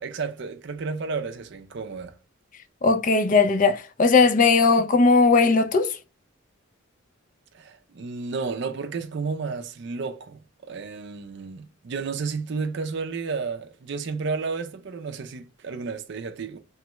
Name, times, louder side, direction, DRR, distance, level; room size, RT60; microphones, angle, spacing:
voice 1, 0.0-2.1 7.5-10.4 10.7-16.6, right 4 dB, 55° right, 0.4 m, -32 dB
voice 2, 2.8-5.9, left 4 dB, 40° left, 0.4 m, -18 dB
3.1 x 2.2 x 2.9 m
head